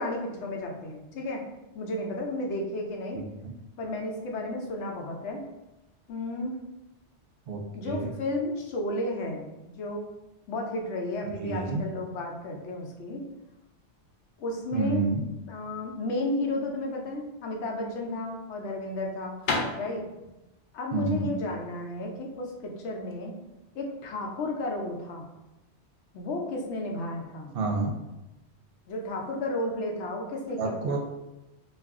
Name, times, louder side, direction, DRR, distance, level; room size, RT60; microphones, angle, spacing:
voice 1, 0.0-1.4 1.7-3.2 3.8-5.4 6.1-6.6 7.7-10.1 10.5-13.2 14.4-15.1 15.5-19.3 19.7-20.0 20.7-23.3 23.7-25.3 26.1-27.6 28.9-31.0, left 1 dB, 85° left, 1 dB, 0.9 m, -33 dB
voice 2, 11.3-11.8 14.7-15.2 20.9-21.3 27.5-27.9 30.6-31.0, right 3 dB, 65° right, 0 dB, 0.7 m, -28 dB
sound 1, 18.3-23.2, left 3 dB, 60° left, 0.6 m, -35 dB
2.4 x 2.3 x 3.4 m, 0.97 s
omnidirectional pair, 1.2 m